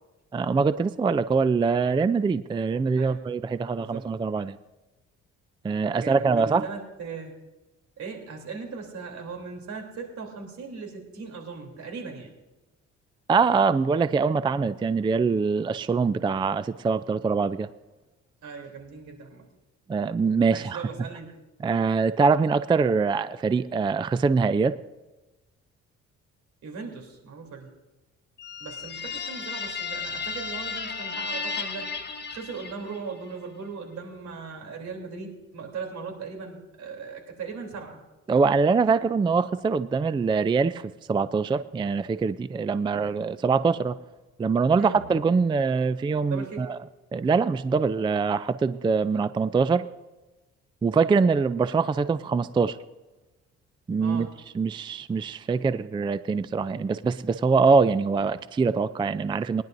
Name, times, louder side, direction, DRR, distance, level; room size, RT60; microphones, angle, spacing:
voice 1, 0.3-4.6 5.6-6.7 13.3-17.7 19.9-20.8 21.6-24.8 38.3-44.0 44.4-46.8 47.1-49.9 50.8-52.8 53.9-54.3 54.5-59.6, right 4 dB, 15° right, 14 dB, 0.3 m, -23 dB
voice 2, 5.9-7.4 8.0-12.3 18.4-19.4 20.5-21.4 26.6-27.7 28.6-31.9 32.3-38.0 44.8-45.0 46.2-46.7 54.0-54.4, right 5 dB, 70° right, 2 dB, 3.2 m, -38 dB
sound 1, 28.4-33.1, left 5 dB, 35° left, 1.3 m, -34 dB
21.5 x 10.5 x 2.6 m, 1.1 s
cardioid pair, 90°, 30 cm